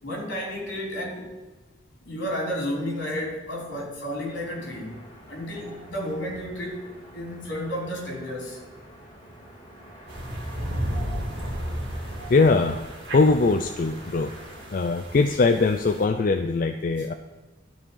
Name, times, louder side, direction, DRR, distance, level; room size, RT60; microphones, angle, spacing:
voice 1, 0.0-1.3 2.0-5.0 5.3-8.6, equal, 75° left, -3 dB, 3.8 m, -32 dB
sound 1, 4.2-14.7, right 1 dB, 25° left, 2.4 m, -47 dB
sound 2, 10.1-16.1, equal, 60° right, 2.3 m, -34 dB
voice 2, 12.3-12.8 13.1-14.3 14.7-17.1, left 3 dB, 45° left, 7 dB, 0.4 m, -21 dB
12.5 x 4.5 x 7.3 m, 1.2 s
head